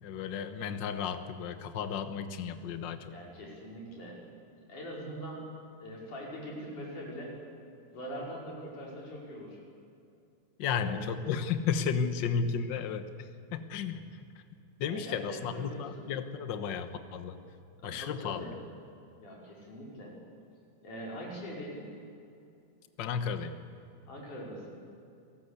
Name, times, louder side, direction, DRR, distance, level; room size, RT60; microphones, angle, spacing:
voice 1, 0.0-3.1 10.6-14.1 14.8-17.4 17.8-18.6 23.0-23.6, left 6 dB, 60° left, 9 dB, 1.2 m, -33 dB
voice 2, 3.1-4.2 4.7-5.4 5.8-7.3 7.9-9.6 10.7-11.1 14.9-16.1 17.8-18.5 19.2-20.1 20.8-21.9 24.1-24.8, equal, 75° left, -3 dB, 6.5 m, -42 dB
28.5 x 17.5 x 8.2 m, 2.6 s
omnidirectional pair, 3.6 m